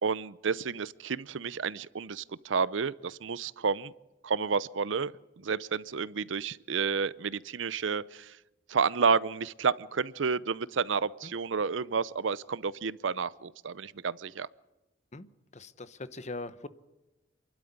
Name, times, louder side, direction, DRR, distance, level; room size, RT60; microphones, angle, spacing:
voice 1, 0.0-3.9 4.2-8.3 8.7-14.5, right 5 dB, 75° right, 19 dB, 0.6 m, -30 dB
voice 2, 15.5-16.7, left 2 dB, 35° left, 14 dB, 0.9 m, -41 dB
27.5 x 12.0 x 9.5 m, 1.1 s
head